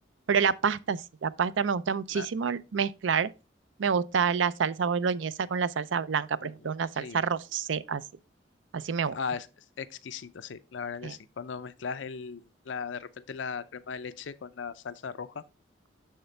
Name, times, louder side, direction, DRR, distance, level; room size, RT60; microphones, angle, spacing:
voice 1, 0.3-3.3 3.8-8.0 8.7-9.2 11.0-11.1, right 6 dB, 80° right, 0.5 m, -28 dB
voice 2, 9.1-9.5 9.8-15.4, left 5 dB, 80° left, 0.5 m, -37 dB
6.7 x 6.5 x 3.2 m
head